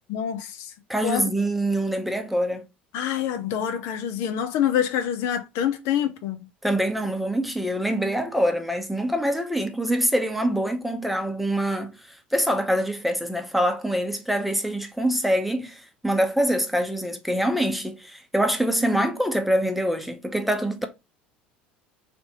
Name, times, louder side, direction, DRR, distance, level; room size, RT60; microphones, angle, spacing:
voice 1, 0.1-0.7 1.0-1.2 2.9-6.5, left 9 dB, 60° left, 0.7 m, -26 dB
voice 2, 0.9-2.7 6.6-20.9, equal, ahead, 0.8 m, -25 dB
3.4 x 2.9 x 4.1 m
hypercardioid pair, 75°, 5 cm